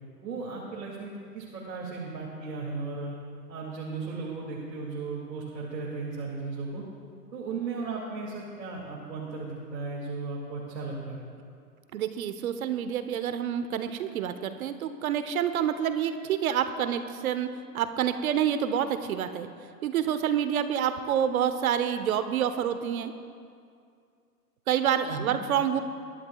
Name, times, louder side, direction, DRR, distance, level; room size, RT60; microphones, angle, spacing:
voice 1, 0.2-3.1 3.5-6.8 7.3-11.2 25.1-25.3, right 4 dB, 80° right, -4 dB, 2.7 m, -36 dB
voice 2, 11.9-17.5 17.7-19.5 19.8-23.1 24.7-25.8, right 9 dB, 60° right, 10 dB, 1.0 m, -28 dB
22.5 x 11.5 x 2.4 m, 2.3 s
hypercardioid pair, 125°, 49 cm